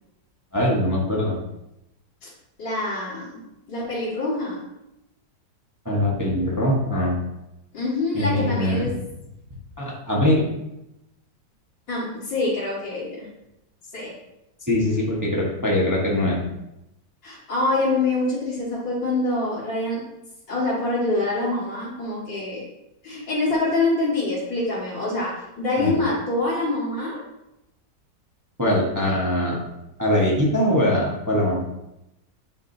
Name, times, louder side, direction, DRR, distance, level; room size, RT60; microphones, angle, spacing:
voice 1, 0.5-1.4 5.8-7.1 8.1-8.9 9.8-10.5 14.7-16.4 25.8-26.0 28.6-29.6 30.0-31.6, left 1 dB, 10° right, -4 dB, 1.1 m, -22 dB
voice 2, 2.6-3.4 3.7-4.6 7.7-8.9 11.9-13.3 13.9-14.1 17.2-20.0 20.5-22.6 23.0-27.2, left 2 dB, 90° left, -11 dB, 2.6 m, -25 dB
9.2 x 5.0 x 2.8 m, 0.89 s
omnidirectional pair, 2.0 m